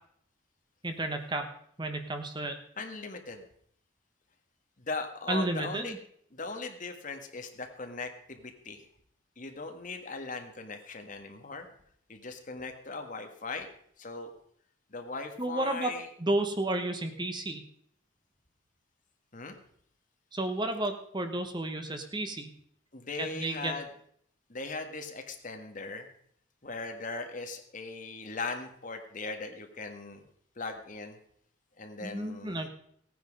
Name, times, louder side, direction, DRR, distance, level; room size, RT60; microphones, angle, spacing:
voice 1, 0.8-1.5 1.8-2.6 5.3-6.0 15.4-15.9 16.2-17.6 20.3-22.5 23.2-23.7 32.0-32.7, right 2 dB, 25° right, 7 dB, 1.0 m, -32 dB
voice 2, 2.8-3.4 4.8-5.9 6.3-8.8 9.4-11.7 12.1-13.7 14.0-14.3 14.9-16.1 19.3-19.6 22.9-23.9 24.5-26.1 26.6-30.2 30.5-31.2 31.8-32.7, left 3 dB, 40° left, 5 dB, 1.6 m, -39 dB
16.5 x 9.4 x 5.3 m, 0.66 s
head